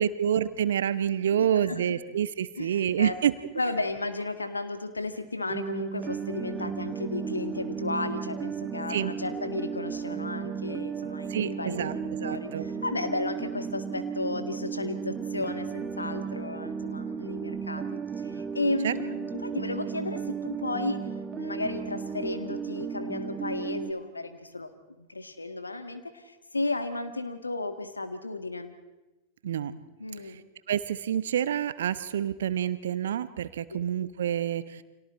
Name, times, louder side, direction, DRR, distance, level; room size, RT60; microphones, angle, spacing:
voice 1, 0.0-3.4 8.9-9.1 11.3-12.7 18.8-18.9 29.4-29.7 30.2-30.4 30.7-34.8, right 9 dB, 60° right, 14 dB, 1.0 m, -28 dB
voice 2, 1.3-1.8 2.6-3.2 3.6-17.8 18.2-21.0 21.3-28.7 30.0-30.4, left 2 dB, 80° left, 9 dB, 1.7 m, -34 dB
sound 1, 5.5-23.9, right 6 dB, 20° right, 1.4 m, -35 dB
30.0 x 25.5 x 4.4 m, 1.1 s
figure-of-eight pair, 90°, 0 cm